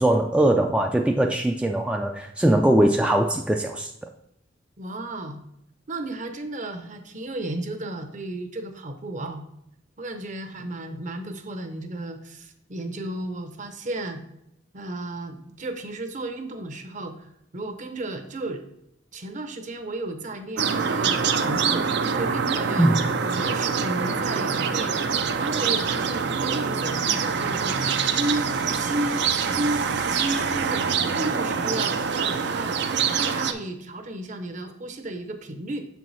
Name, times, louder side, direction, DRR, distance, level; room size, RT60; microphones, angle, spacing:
voice 1, 0.0-3.9 22.8-23.0, right 1 dB, 5° right, 2 dB, 0.3 m, -21 dB
voice 2, 4.8-5.4 5.9-9.4 10.0-14.2 14.7-18.6 19.1-24.9 25.4-32.7 33.1-35.9, right 1 dB, 45° right, 7 dB, 0.8 m, -33 dB
sound 1, 20.6-33.5, right 6 dB, 65° right, 0.5 m, -25 dB
6.6 x 4.6 x 4.0 m, 0.78 s
head